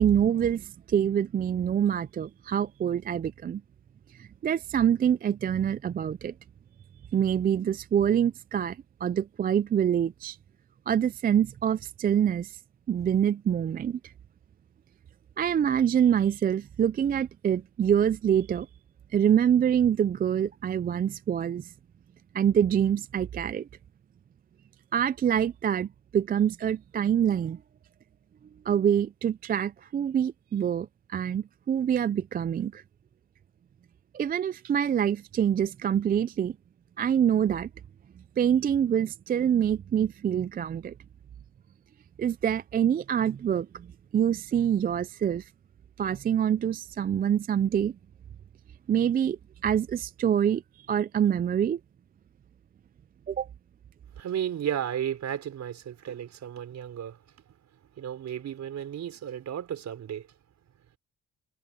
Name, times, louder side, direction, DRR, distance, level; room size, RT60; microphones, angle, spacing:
voice 1, 0.0-3.6 4.1-6.3 7.1-10.4 10.9-12.6 12.9-14.1 15.4-18.7 19.1-21.7 22.3-23.7 24.9-27.6 28.7-32.8 34.1-36.6 37.0-37.7 38.4-40.9 42.2-43.9 44.1-45.5 46.0-48.0 48.9-51.8 53.3-53.5, right 9 dB, 30° right, 0.4 m, -25 dB
voice 2, 54.2-57.2 58.0-60.3, right 9 dB, 65° right, 4.6 m, -33 dB
cardioid pair, 90°, 30 cm